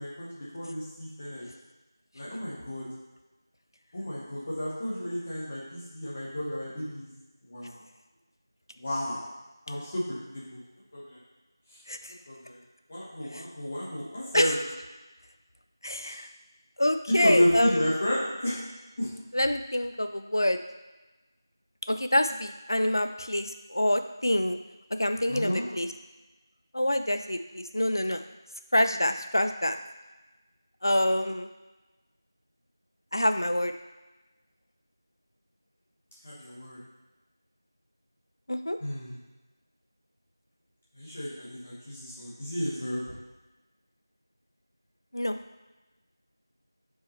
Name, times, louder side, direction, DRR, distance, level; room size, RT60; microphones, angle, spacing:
voice 1, 0.0-1.5 2.1-2.9 3.9-7.1 7.4-7.8 8.7-9.2 9.7-10.6 10.9-11.2 11.7-11.8 12.3-12.6 12.9-14.6 16.0-16.1 17.1-18.6 19.0-19.1 25.3-25.6 36.2-36.8 38.8-39.2 40.9-43.0, equal, 20° left, -8 dB, 1.1 m, -31 dB
voice 2, 15.8-16.3 16.8-17.8 19.3-20.6 21.9-24.6 25.0-25.9 26.7-28.2 28.7-29.8 30.8-31.5 33.1-33.7 38.5-38.8 45.1-45.4, left 1 dB, 65° left, 8 dB, 0.5 m, -26 dB
6.6 x 4.7 x 3.1 m, 1.1 s
figure-of-eight pair, 175°, 2 cm